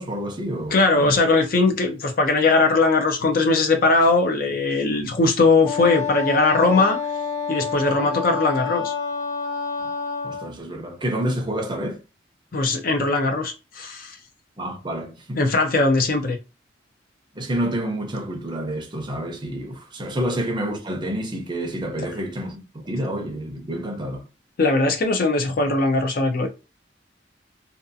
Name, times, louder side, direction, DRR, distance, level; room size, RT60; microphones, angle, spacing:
voice 1, 0.0-1.2 9.8-9.9 10.2-12.0 14.6-15.4 17.3-24.2, right 1 dB, 25° right, 0.5 m, -28 dB
voice 2, 0.7-7.0 7.5-8.9 12.5-14.2 15.4-16.4 24.6-26.5, left 3 dB, 50° left, 0.5 m, -20 dB
Wind instrument woodwind instrument, 5.6-10.5, left 6 dB, 20° left, 0.7 m, -28 dB
2.6 x 2.3 x 2.6 m
head